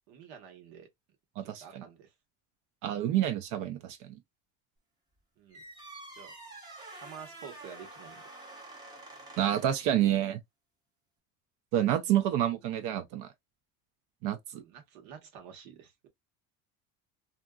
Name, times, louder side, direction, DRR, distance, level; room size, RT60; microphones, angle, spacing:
voice 1, 0.1-0.9 1.4-2.1 5.4-5.6 6.1-6.3 6.8-8.3 14.6-16.1, right 7 dB, 85° right, 1.2 m, -49 dB
voice 2, 1.4-1.8 2.8-4.2 9.4-10.4 11.7-13.3 14.2-14.6, right 11 dB, 60° right, 0.6 m, -28 dB
sound 1, 5.5-10.0, right 2 dB, 10° right, 0.6 m, -48 dB
2.8 x 2.5 x 2.3 m
cardioid pair, 170°, 35 cm